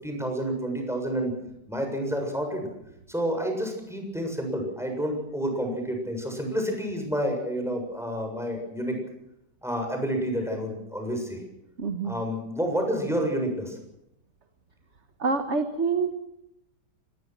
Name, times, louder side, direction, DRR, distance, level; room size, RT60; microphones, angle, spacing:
voice 1, 0.0-1.3 1.7-2.7 3.1-9.0 9.6-11.4 12.0-13.8, equal, ahead, 3 dB, 7.2 m, -29 dB
voice 2, 11.8-12.1 15.2-16.2, right 4 dB, 45° right, 7 dB, 1.7 m, -26 dB
24.5 x 20.5 x 6.2 m, 0.84 s
omnidirectional pair, 1.8 m